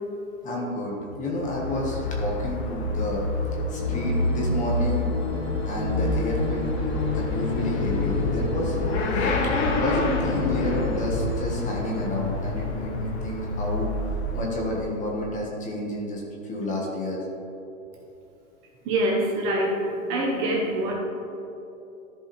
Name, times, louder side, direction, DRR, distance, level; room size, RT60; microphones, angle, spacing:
voice 1, 0.4-3.3 3.7-5.1 5.6-6.7 7.1-8.8 9.1-9.3 9.7-13.9 14.3-17.2, left 1 dB, 20° left, -2 dB, 1.7 m, -30 dB
Motorcycle / Accelerating revving vroom, 1.3-15.1, left 2 dB, 50° left, 1.5 m, -27 dB
sound 1, 3.8-12.0, right 2 dB, 10° right, 2.0 m, -35 dB
voice 2, 18.8-20.9, right 1 dB, 30° right, -2 dB, 1.4 m, -25 dB
14.0 x 5.3 x 3.4 m, 2.9 s
hypercardioid pair, 130°, 40 cm